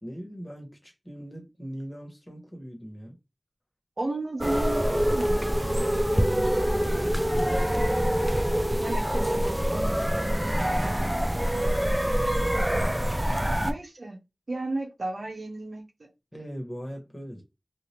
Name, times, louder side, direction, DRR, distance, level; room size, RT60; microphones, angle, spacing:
voice 1, 0.0-3.1 16.3-17.4, equal, 25° left, 1.3 m, -40 dB
voice 2, 4.0-7.0 8.8-9.9 13.6-14.2 14.5-15.9, right 2 dB, 75° right, 0.7 m, -34 dB
sound 1, 4.4-13.7, equal, 15° right, 0.4 m, -25 dB
2.7 x 2.5 x 3.2 m
wide cardioid pair, 45°, 0 cm